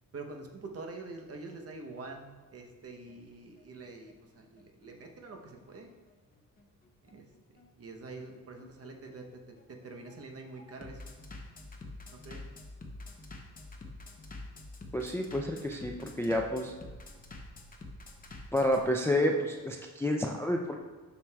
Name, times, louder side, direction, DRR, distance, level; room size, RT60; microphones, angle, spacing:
voice 1, 0.1-5.9 7.1-11.1 12.1-12.4, right 3 dB, 45° right, 3 dB, 0.8 m, -46 dB
Bass drum, 2.8-18.8, left 2 dB, 25° left, 0.7 m, -48 dB
voice 2, 14.9-16.7 18.5-20.8, left 1 dB, 10° left, 2 dB, 0.3 m, -29 dB
7.2 x 6.1 x 2.3 m, 1.4 s
wide cardioid pair, 130°, 34 cm